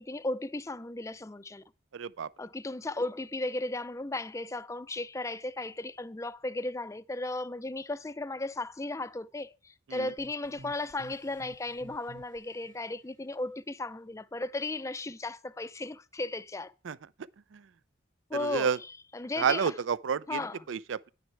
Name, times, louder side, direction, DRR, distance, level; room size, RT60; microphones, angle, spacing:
voice 1, 0.0-1.6 2.4-16.7 18.3-18.7 19.1-19.7 20.3-20.6, left 2 dB, 15° left, 0.4 m, -35 dB
voice 2, 1.9-2.3 9.9-10.1 16.8-17.0 17.5-17.7 18.3-18.8 19.4-21.1, right 6 dB, 75° right, 0.4 m, -30 dB
sound 1, 10.2-12.9, right 2 dB, 45° right, 0.9 m, -52 dB
10.5 x 9.5 x 4.6 m
head